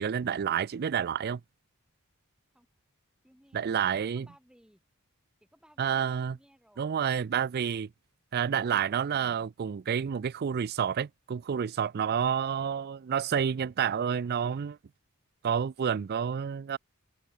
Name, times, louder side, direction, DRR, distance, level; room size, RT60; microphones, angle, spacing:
voice 1, 0.0-1.4 3.5-4.3 5.8-6.4 6.8-7.9 8.3-14.8 15.4-16.8, right 7 dB, 45° right, 0.4 m, -29 dB
voice 2, 3.2-4.8 5.4-6.9 12.5-12.8, equal, 5° right, 3.6 m, -62 dB
open air
head